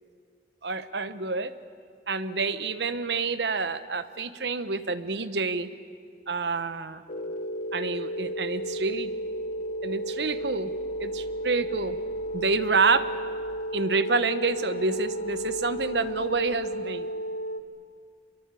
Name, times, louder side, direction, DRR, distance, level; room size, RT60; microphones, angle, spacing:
voice 1, 0.6-1.5 2.1-5.7 6.3-7.0 7.7-9.1 9.8-10.7 11.0-12.0 12.3-13.1 13.7-17.1, right 4 dB, 65° right, 13 dB, 1.1 m, -28 dB
sound 1, 7.1-17.6, right 1 dB, 50° left, 1.1 m, -33 dB
25.5 x 22.5 x 8.4 m, 2.3 s
head